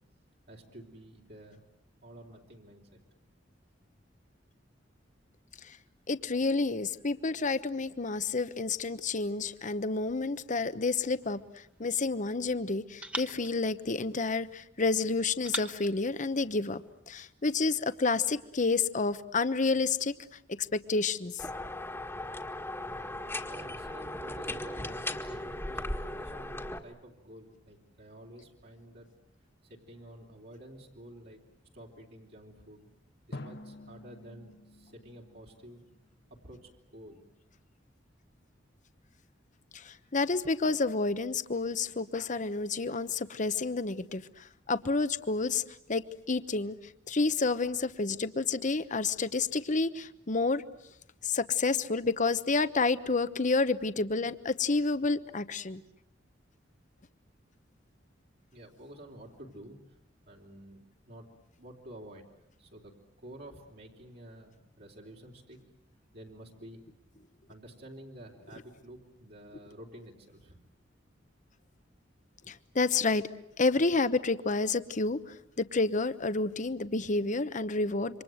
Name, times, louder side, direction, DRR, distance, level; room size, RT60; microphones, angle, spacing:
voice 1, 0.5-1.6 2.0-3.0 23.5-29.1 29.7-31.4 31.7-32.9 33.3-35.8 36.4-37.3 58.5-59.8 60.3-61.3 61.6-62.2 62.6-62.9 63.2-65.6 66.1-66.8 67.5-70.6, right 1 dB, 60° right, -1 dB, 3.7 m, -50 dB
voice 2, 6.1-16.8 17.1-20.1 20.6-21.5 39.7-45.6 45.9-50.6 51.2-55.8 72.5-73.3 73.6-78.2, left 3 dB, 45° left, 13 dB, 1.0 m, -29 dB
sound 1, 11.2-12.4 13.0-14.6 15.4-17.0, right 1 dB, 5° right, 1.3 m, -43 dB
sound 2, 21.4-26.8, left 1 dB, 15° left, 1.7 m, -37 dB
Drum, 33.3-36.2, left 2 dB, 60° left, 1.3 m, -48 dB
28.0 x 25.0 x 7.9 m, 0.78 s
head